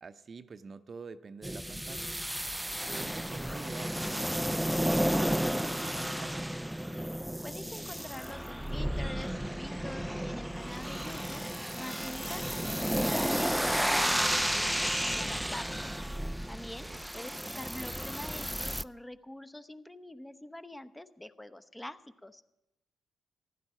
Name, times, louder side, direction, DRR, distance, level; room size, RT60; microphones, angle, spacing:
voice 1, 0.0-2.1 2.8-6.5 16.6-17.0, right 5 dB, 50° right, 11 dB, 0.7 m, -48 dB
sound 1, 1.4-18.8, equal, 5° right, 0.4 m, -32 dB
voice 2, 7.4-11.5 11.7-12.6 12.9-15.8 16.5-22.4, left 1 dB, 10° left, 11 dB, 0.9 m, -45 dB
14.5 x 11.0 x 5.6 m, 0.91 s
hypercardioid pair, 45°, 0 cm